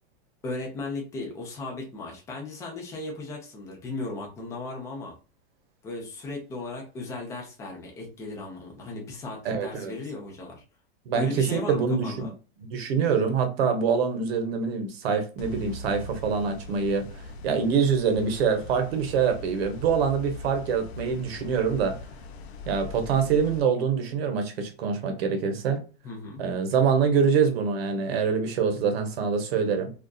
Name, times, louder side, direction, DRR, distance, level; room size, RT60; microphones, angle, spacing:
voice 1, 0.4-5.2 5.8-10.6 11.1-12.3 26.0-26.4, left 2 dB, 10° left, 0.4 m, -36 dB
voice 2, 9.4-9.9 11.1-12.3 12.6-17.1 17.4-22.0 22.7-25.8 26.4-29.9, right 6 dB, 75° right, 0.8 m, -25 dB
sound 1, 15.4-23.6, left 2 dB, 90° left, 0.5 m, -41 dB
2.5 x 2.3 x 2.2 m
supercardioid pair, 155°, 31 cm